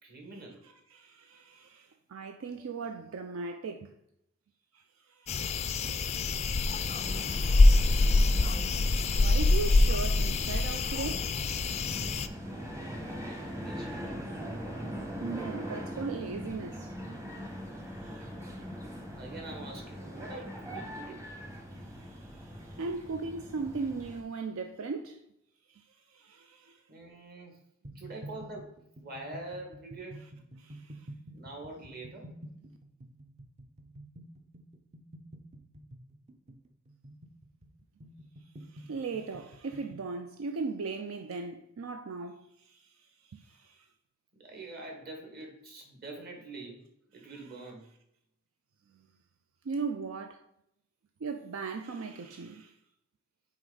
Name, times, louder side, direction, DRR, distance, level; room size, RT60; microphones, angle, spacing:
voice 1, 0.0-0.6 2.5-2.6 13.3-14.2 19.1-21.2 26.9-27.6 27.9-30.2 31.3-32.3 44.3-46.8 47.1-47.9 50.0-50.1, right 2 dB, 50° right, 1.7 m, -45 dB
voice 2, 0.9-3.9 4.7-4.8 5.2-6.0 8.7-11.3 15.2-16.9 18.0-18.3 21.9-25.2 25.7-25.8 26.1-26.8 30.6-31.0 38.7-42.8 43.3-43.8 49.6-50.4 51.2-52.7, right 4 dB, 85° right, 0.4 m, -38 dB
sound 1, 5.3-12.3, left 2 dB, 30° left, 0.3 m, -25 dB
sound 2, 6.7-24.2, equal, 15° right, 0.9 m, -41 dB
sound 3, 27.8-40.1, right 1 dB, 35° right, 0.5 m, -49 dB
6.1 x 4.3 x 3.9 m
head